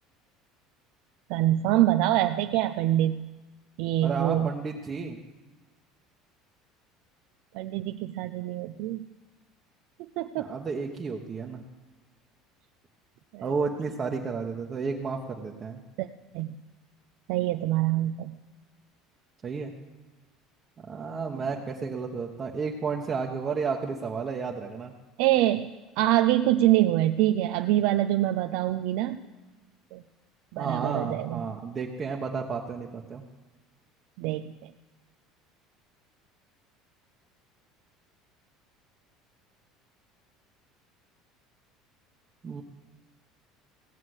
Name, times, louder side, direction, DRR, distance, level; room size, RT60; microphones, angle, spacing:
voice 1, 1.3-3.3 3.8-4.5 7.5-9.1 10.2-10.5 13.3-13.5 16.0-16.1 16.3-16.6 17.3-18.3 21.1-21.2 25.2-25.7 26.0-29.2 29.9-30.0 30.5-31.4 34.2-34.7, right 14 dB, 70° right, 7 dB, 0.5 m, -25 dB
voice 2, 4.0-5.2 10.4-11.6 13.4-15.8 19.4-19.7 20.8-24.9 30.6-33.2 42.4-42.6, right 5 dB, 25° right, 0 dB, 1.1 m, -32 dB
17.5 x 7.3 x 8.0 m, 1.2 s
cardioid pair, 140°, 0 cm